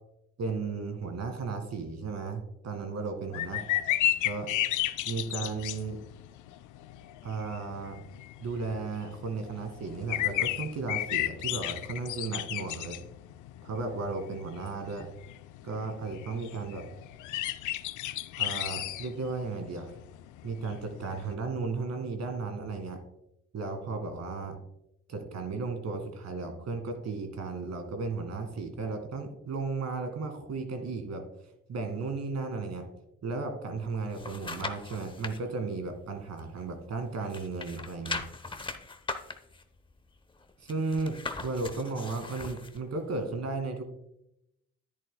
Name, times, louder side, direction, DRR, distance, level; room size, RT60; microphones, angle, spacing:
voice 1, 0.4-3.8 4.2-4.5 5.1-6.0 7.2-8.0 8.4-13.0 13.6-15.1 15.6-16.9 18.4-20.0 20.4-23.0 23.5-24.6 25.1-31.2 31.7-32.8 33.2-38.2 40.6-43.8, right 4 dB, 60° right, 7 dB, 1.9 m, -35 dB
sound 1, 3.3-21.3, left 14 dB, 80° left, 0.5 m, -34 dB
sound 2, 33.8-35.4 35.9-37.0 37.2-42.8 43.2-43.3, left 3 dB, 15° left, 0.8 m, -40 dB
10.5 x 10.5 x 2.2 m, 0.82 s
cardioid pair, 90°, 30 cm